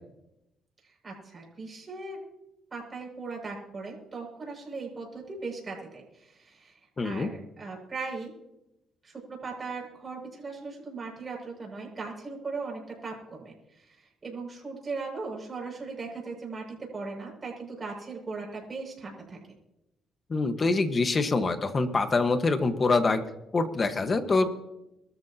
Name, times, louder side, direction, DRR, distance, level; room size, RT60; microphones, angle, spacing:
voice 1, 0.8-2.2 2.7-8.3 9.0-19.4, right 4 dB, 35° right, -1 dB, 6.6 m, -38 dB
voice 2, 7.0-7.3 20.3-23.2 23.5-24.5, left 3 dB, 35° left, 8 dB, 1.5 m, -25 dB
24.0 x 13.0 x 2.9 m, 0.90 s
cardioid pair, 90°, 0 cm